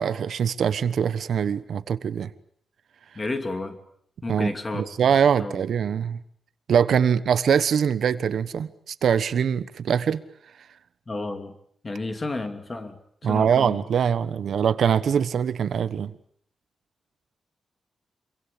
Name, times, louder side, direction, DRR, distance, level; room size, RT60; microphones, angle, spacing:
voice 1, 0.0-2.3 4.3-6.2 6.7-10.2 13.2-16.1, right 7 dB, 65° right, 13 dB, 1.2 m, -23 dB
voice 2, 3.1-3.8 4.2-4.8 5.4-5.6 11.1-11.5 11.8-13.8, left 2 dB, 25° left, 7 dB, 2.8 m, -31 dB
26.5 x 24.5 x 8.6 m, 0.65 s
wide cardioid pair, 175°, 0 cm